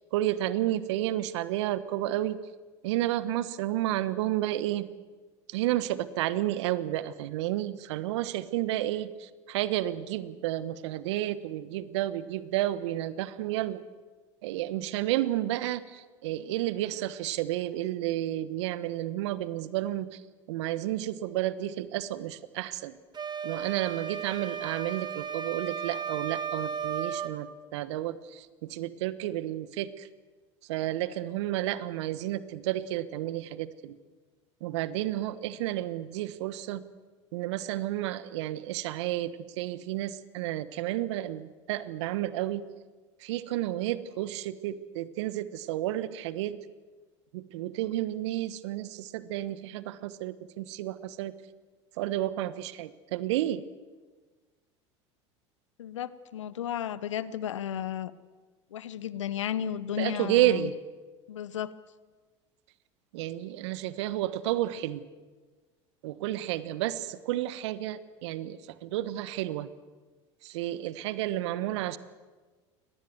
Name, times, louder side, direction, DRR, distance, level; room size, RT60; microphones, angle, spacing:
voice 1, 0.1-2.4 2.8-4.9 5.5-13.8 14.4-20.2 20.5-22.9 23.4-30.1 30.7-33.9 34.6-36.8 37.3-42.7 43.2-46.6 47.3-51.3 52.0-53.6 60.0-60.8 63.1-65.0 66.0-69.7 70.4-72.0, right 14 dB, 70° right, 15 dB, 1.2 m, -31 dB
sound 1, 23.1-27.4, right 7 dB, 30° right, 2.2 m, -35 dB
voice 2, 55.8-58.1 58.7-60.7 61.3-61.7, left 10 dB, 80° left, 17 dB, 1.0 m, -33 dB
24.0 x 19.0 x 7.8 m, 1.4 s
hypercardioid pair, 75°, 15 cm